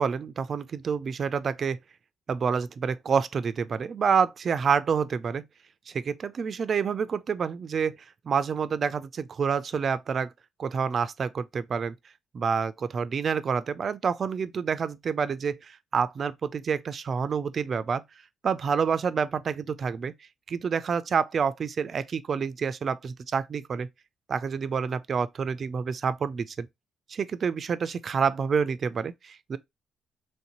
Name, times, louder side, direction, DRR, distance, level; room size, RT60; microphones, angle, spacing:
voice 1, 0.0-1.8 2.3-5.4 5.9-8.0 8.3-10.3 10.6-11.9 12.3-18.0 18.4-20.1 20.5-23.9 24.3-26.7 27.1-29.6, right 6 dB, 50° right, 0.3 m, -28 dB
3.1 x 2.7 x 2.9 m
cardioid pair, 90°, 0 cm